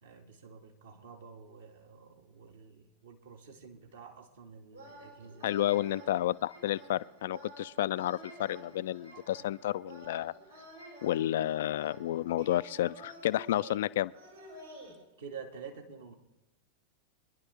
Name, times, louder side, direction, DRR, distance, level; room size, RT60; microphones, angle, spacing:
voice 1, 0.0-5.6 9.1-9.2 15.2-16.1, right 6 dB, 65° right, 2 dB, 2.0 m, -49 dB
sound 1, 4.7-14.9, right 1 dB, 80° right, 5.8 m, -51 dB
voice 2, 5.4-10.3 11.0-14.1, left 13 dB, 55° left, 18 dB, 0.4 m, -31 dB
24.5 x 11.0 x 3.5 m, 0.94 s
figure-of-eight pair, 90°, 0 cm